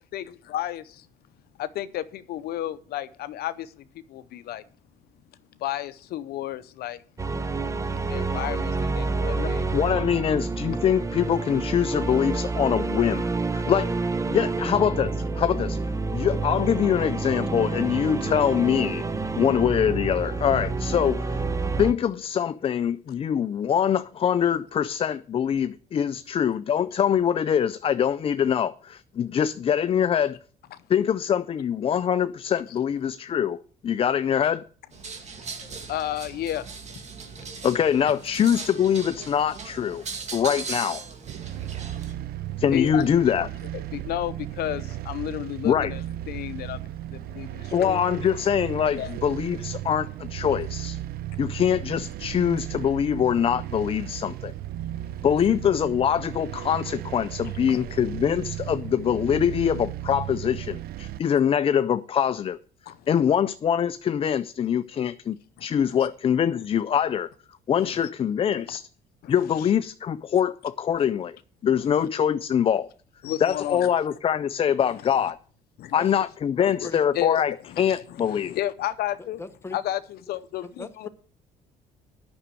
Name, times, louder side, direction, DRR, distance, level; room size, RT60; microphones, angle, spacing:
voice 1, 0.1-1.1 1.6-4.6 5.6-7.0 8.1-9.7 30.7-30.8 35.6-36.7 41.4-41.7 41.9-42.3 42.7-43.0 43.7-48.0 49.0-49.1 55.0-55.3 57.7-57.8 62.9-63.3 65.6-65.7 67.8-68.1 68.7-68.8 69.2-69.7 73.2-73.9 75.0-75.2 75.8-76.0 76.8-79.4 79.7-81.1, left 13 dB, 70° left, 0.6 m, -33 dB
sound 1, 7.2-21.9, right 3 dB, 20° right, 0.7 m, -28 dB
voice 2, 9.4-13.9 14.3-15.8 16.1-19.0 19.4-21.4 21.8-30.4 30.9-33.6 33.8-34.6 37.6-40.0 40.3-41.0 42.6-43.5 45.6-45.9 47.7-51.0 51.4-54.5 55.2-62.6 63.1-67.3 67.7-68.8 69.3-71.3 71.6-72.9 73.4-75.4 75.9-78.5, left 8 dB, 35° left, 0.4 m, -24 dB
sound 2, 34.9-42.1, right 5 dB, 40° right, 1.9 m, -38 dB
sound 3, 41.3-61.2, right 13 dB, 65° right, 0.4 m, -35 dB
voice 3, 76.6-77.0 79.4-79.8 80.6-81.1, left 3 dB, 15° left, 1.1 m, -39 dB
9.7 x 6.2 x 7.5 m
cardioid pair, 110°, 17 cm